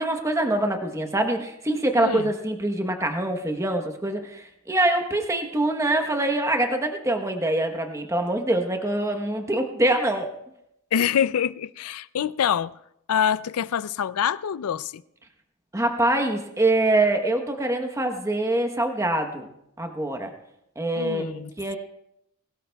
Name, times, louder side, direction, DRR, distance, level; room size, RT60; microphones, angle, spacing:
voice 1, 0.0-10.3 15.7-19.5 19.8-20.3 20.8-21.8, right 1 dB, 15° right, 1.0 m, -24 dB
voice 2, 2.0-2.3 10.9-12.7 13.1-15.0 20.9-21.5, left 8 dB, 85° left, 0.4 m, -25 dB
20.5 x 18.0 x 2.3 m
head